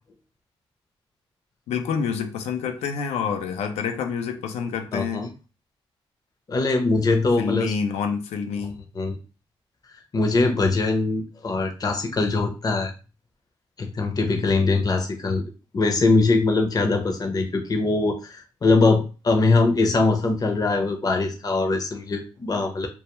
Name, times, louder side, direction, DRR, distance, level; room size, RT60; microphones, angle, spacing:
voice 1, 1.7-5.3 7.4-8.8, left 6 dB, 85° left, 6 dB, 0.4 m, -27 dB
voice 2, 4.9-5.3 6.5-7.7 9.0-9.2 10.1-12.9 13.8-15.4 15.7-22.9, left 3 dB, 35° left, 4 dB, 0.6 m, -22 dB
2.2 x 2.2 x 2.9 m, 0.33 s
supercardioid pair, 55°, 11 cm